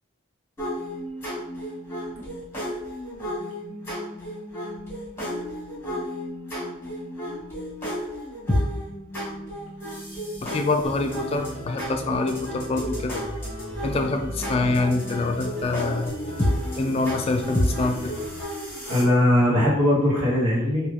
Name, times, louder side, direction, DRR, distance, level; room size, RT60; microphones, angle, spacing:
sound 1, 0.6-19.0, equal, 10° left, 1.2 m, -31 dB
voice 1, 10.4-13.2 13.8-16.1 16.8-18.1, left 3 dB, 30° left, 5 dB, 0.3 m, -25 dB
sound 2, 10.8-18.4, equal, 35° right, 0.7 m, -37 dB
voice 2, 18.8-20.9, left 1 dB, 90° right, -4 dB, 1.3 m, -20 dB
3.6 x 2.7 x 3.3 m, 0.83 s
head